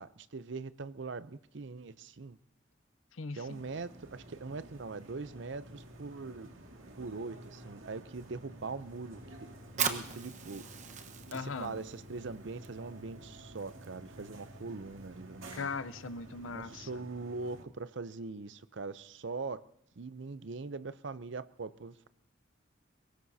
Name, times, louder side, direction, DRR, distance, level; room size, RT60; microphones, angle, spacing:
voice 1, 0.0-2.4 3.4-6.5 7.0-9.2 9.8-10.7 11.3-15.7 16.5-19.7 20.0-22.1, right 4 dB, 65° right, 0.6 m, -42 dB
voice 2, 3.1-3.7 11.3-11.8 15.5-16.9, left 4 dB, 85° left, 0.7 m, -39 dB
sound 1, 3.4-17.7, right 1 dB, 90° right, 2.1 m, -51 dB
Fire, 9.6-16.9, right 7 dB, 35° right, 1.1 m, -42 dB
23.0 x 19.0 x 2.8 m
head